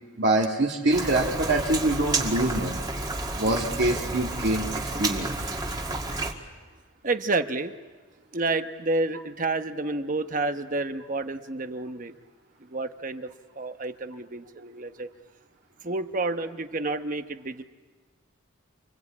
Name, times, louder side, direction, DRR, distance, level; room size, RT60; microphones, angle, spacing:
voice 1, 0.2-2.8 3.4-4.7 5.0-5.3, right 2 dB, 55° right, -2 dB, 1.9 m, -24 dB
Rain, 0.9-6.3, right 2 dB, 20° right, 2.0 m, -30 dB
voice 2, 7.0-7.7 8.3-12.1 12.7-15.1 15.8-17.6, right 2 dB, 40° right, 8 dB, 1.0 m, -29 dB
29.0 x 22.5 x 8.6 m, 1.4 s
head